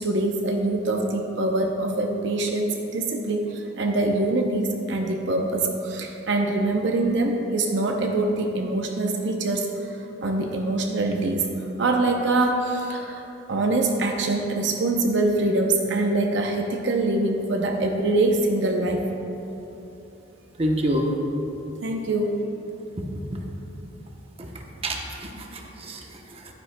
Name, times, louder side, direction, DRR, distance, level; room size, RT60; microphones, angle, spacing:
voice 1, 0.0-11.5 11.8-13.2 13.5-19.1 21.8-22.3, right 2 dB, 65° right, 2 dB, 0.6 m, -24 dB
voice 2, 20.6-21.1 23.1-23.4 24.4-26.5, equal, 30° right, 1 dB, 0.8 m, -28 dB
11.5 x 9.6 x 2.2 m, 3.0 s
head